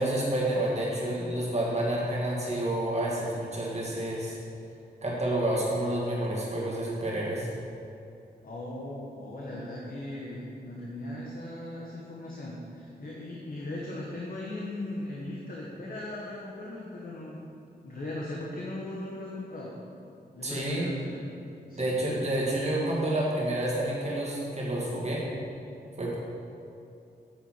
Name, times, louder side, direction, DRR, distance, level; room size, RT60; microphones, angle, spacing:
voice 1, 0.0-4.4 5.0-7.5 20.4-20.9 21.8-25.3 26.0-26.2, right 1 dB, 40° right, -5 dB, 2.4 m, -29 dB
voice 2, 8.4-17.4 17.8-19.8 20.3-21.2 21.7-22.0, left 1 dB, 55° left, -4 dB, 1.3 m, -38 dB
9.8 x 8.0 x 4.6 m, 2.7 s
wide cardioid pair, 135°, 17 cm